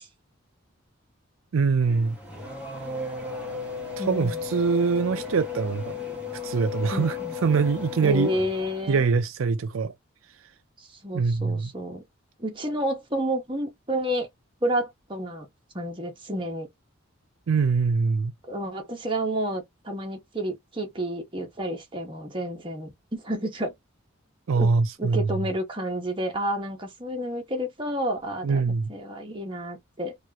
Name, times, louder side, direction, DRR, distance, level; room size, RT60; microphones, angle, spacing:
voice 1, 1.5-2.2 4.0-5.9 6.4-7.2 7.4-8.3 8.9-9.9 11.1-11.7 17.5-18.3 24.5-25.4 28.4-28.9, right 5 dB, 75° right, 0.4 m, -23 dB
Race car auto racing / Accelerating revving vroom, 1.8-9.1, left 5 dB, 5° right, 1.6 m, -35 dB
voice 2, 4.0-4.4 6.9-7.3 8.0-9.0 11.0-12.0 12.4-14.3 14.6-15.5 15.7-16.7 18.5-23.7 24.5-24.7 25.0-30.1, equal, 25° right, 1.1 m, -30 dB
4.5 x 2.5 x 2.9 m
head